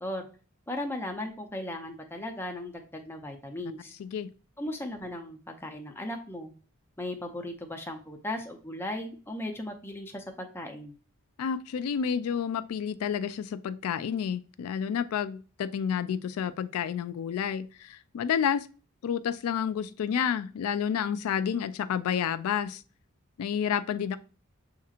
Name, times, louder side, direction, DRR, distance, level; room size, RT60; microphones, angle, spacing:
voice 1, 0.7-3.9 4.6-6.5 7.0-10.9, left 1 dB, 10° left, 0.5 m, -37 dB
voice 2, 4.0-4.3 11.4-18.7 19.0-22.8 23.4-24.2, left 8 dB, 80° left, 0.3 m, -30 dB
7.1 x 2.9 x 2.4 m
head